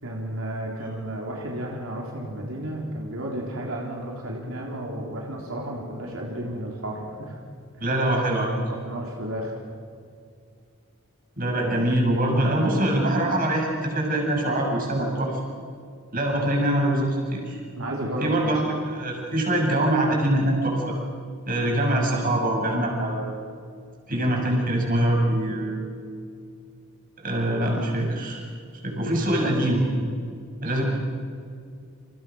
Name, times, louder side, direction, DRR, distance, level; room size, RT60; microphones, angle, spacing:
voice 1, 0.0-7.4 7.7-7.9 8.6-9.6 17.8-18.6 30.7-30.8, right 1 dB, 85° right, -1 dB, 3.9 m, -33 dB
voice 2, 7.8-8.5 11.4-15.4 16.1-17.6 18.2-20.8 21.5-23.3 24.1-25.8 27.2-28.4 28.8-29.9 30.6-30.8, right 1 dB, 45° right, 0 dB, 7.5 m, -23 dB
30.0 x 28.0 x 6.4 m, 2.3 s
head